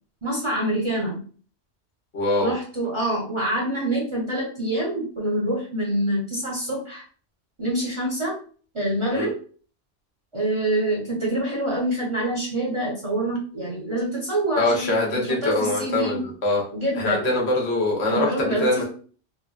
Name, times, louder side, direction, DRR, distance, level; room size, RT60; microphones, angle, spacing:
voice 1, 0.2-1.2 2.4-7.0 7.6-8.4 8.7-9.4 10.3-16.2 16.7-17.3 18.1-18.8, right 1 dB, 30° right, -4 dB, 0.7 m, -26 dB
voice 2, 2.1-2.5 9.1-9.3 14.6-16.6 16.9-18.8, left 2 dB, 75° left, -2 dB, 1.1 m, -23 dB
2.9 x 2.2 x 2.2 m, 0.42 s
omnidirectional pair, 1.1 m